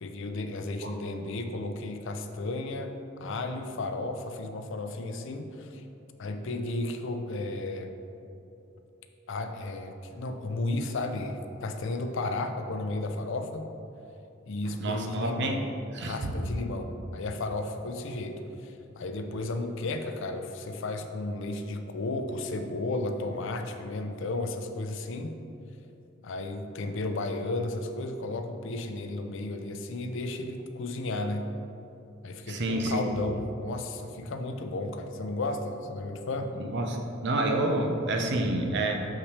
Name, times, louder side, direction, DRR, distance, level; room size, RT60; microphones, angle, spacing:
voice 1, 0.0-5.8 6.2-8.0 9.3-13.7 14.5-15.6 16.0-25.4 26.2-31.5 32.2-36.6, left 2 dB, 65° left, 7 dB, 0.5 m, -33 dB
voice 2, 14.8-15.6 15.9-16.3 32.5-33.0 36.6-37.0 37.2-39.0, right 2 dB, 60° right, 3 dB, 0.7 m, -28 dB
6.7 x 5.8 x 3.3 m, 2.8 s
head